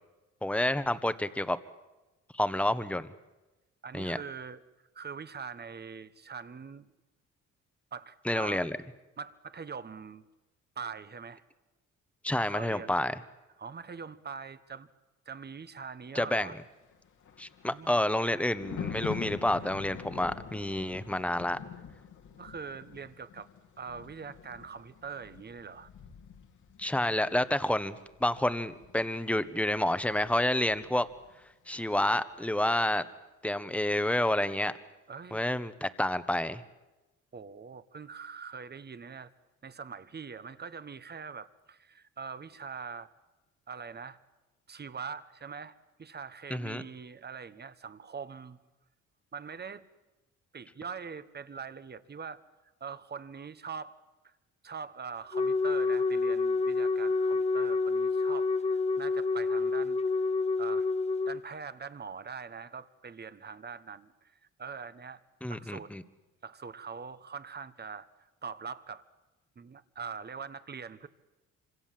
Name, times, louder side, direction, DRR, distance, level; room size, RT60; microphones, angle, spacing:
voice 1, 0.4-1.6 2.4-3.1 3.9-4.2 8.3-8.8 12.2-13.1 16.1-16.5 17.4-21.6 26.8-31.1 31.7-33.1 33.4-34.7 35.3-36.6 46.5-46.8 65.4-66.0, left 1 dB, 5° left, 12 dB, 1.3 m, -29 dB
voice 2, 3.8-4.6 4.9-6.8 7.9-8.6 9.2-10.2 10.7-11.4 12.3-12.9 13.6-14.9 15.2-16.6 17.6-18.0 22.4-23.5 23.8-25.9 35.1-35.5 37.3-39.3 39.6-43.1 43.7-44.2 44.7-45.7 46.0-48.6 49.3-49.9 50.5-52.4 52.8-54.0 54.2-54.3 54.6-60.0 60.6-60.9 61.3-65.2 65.5-65.9 66.4-68.1 68.4-69.0 69.6-71.1, right 5 dB, 35° right, 13 dB, 1.3 m, -43 dB
Thunder, 16.8-31.4 31.7-32.0, left 7 dB, 75° left, 3.0 m, -46 dB
Wind instrument woodwind instrument, 55.3-61.4, left 3 dB, 20° left, 0.8 m, -28 dB
26.5 x 25.5 x 7.7 m, 1.1 s
cardioid pair, 90°, 30 cm